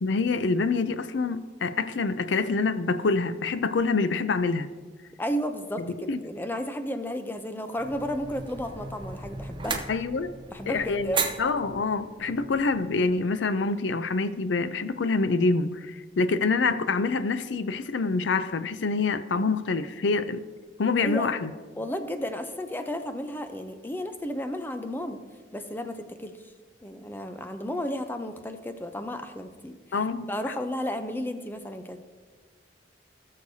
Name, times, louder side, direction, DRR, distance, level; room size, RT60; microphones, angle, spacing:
voice 1, 0.0-4.7 6.1-6.2 9.9-10.3 10.7-20.4 20.8-21.5 29.9-30.3, left 4 dB, 90° left, 12 dB, 0.5 m, -26 dB
voice 2, 5.2-9.8 10.5-11.3 21.0-21.4 21.8-25.2 25.5-26.3 26.8-29.8 30.3-32.0, equal, 10° left, 8 dB, 0.6 m, -33 dB
sound 1, 7.8-13.2, right 5 dB, 25° right, 0.8 m, -36 dB
18.0 x 6.5 x 2.8 m, 1.4 s
head